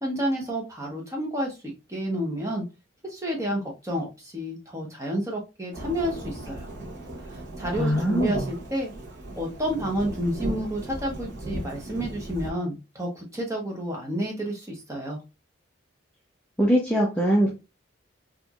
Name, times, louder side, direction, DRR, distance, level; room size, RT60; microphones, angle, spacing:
voice 1, 0.0-2.6 3.0-6.7 7.3-8.9 9.4-15.2, equal, 15° right, -1 dB, 0.9 m, -30 dB
Thunderstorm / Rain, 5.7-12.5, right 2 dB, 55° right, 1.0 m, -36 dB
voice 2, 7.8-8.5 16.6-17.5, equal, 5° left, -4 dB, 0.5 m, -22 dB
4.4 x 2.6 x 2.3 m, 0.27 s
head